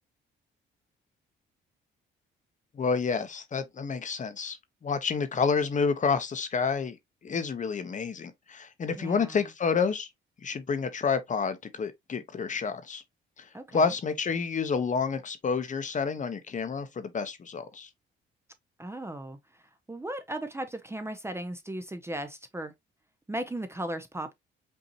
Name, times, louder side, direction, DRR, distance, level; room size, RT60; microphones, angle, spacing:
voice 1, 2.7-4.6 4.8-7.0 7.2-10.1 10.4-13.0 13.4-13.5 13.7-17.9, left 5 dB, 40° left, 0.8 m, -29 dB
voice 2, 8.9-9.5 13.5-13.9 18.8-22.7 23.3-24.3, right 1 dB, 15° right, 0.6 m, -37 dB
5.4 x 2.7 x 2.7 m
cardioid pair, 90°, 20 cm